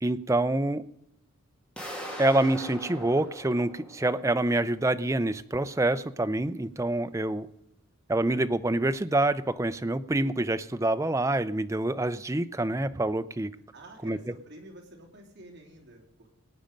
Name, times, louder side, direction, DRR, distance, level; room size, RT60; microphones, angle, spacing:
voice 1, 0.0-0.8 2.2-7.5 8.1-13.5 14.0-14.3, right 2 dB, 15° right, 11 dB, 0.5 m, -26 dB
sound 1, 1.8-4.6, equal, 5° left, 2.4 m, -41 dB
voice 2, 13.7-16.3, right 1 dB, 50° right, 0 dB, 3.0 m, -49 dB
19.5 x 8.8 x 5.2 m, 0.80 s
head